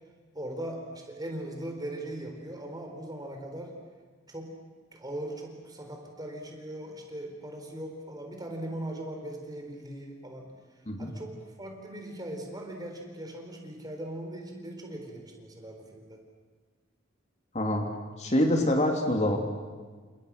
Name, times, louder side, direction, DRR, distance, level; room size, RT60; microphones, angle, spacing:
voice 1, 0.3-3.7 4.3-4.5 4.9-10.5 11.0-16.2, right 1 dB, 20° right, 3 dB, 4.3 m, -39 dB
voice 2, 17.5-17.9 18.2-19.4, left 1 dB, 35° left, 3 dB, 2.7 m, -25 dB
30.0 x 27.0 x 6.5 m, 1.5 s
head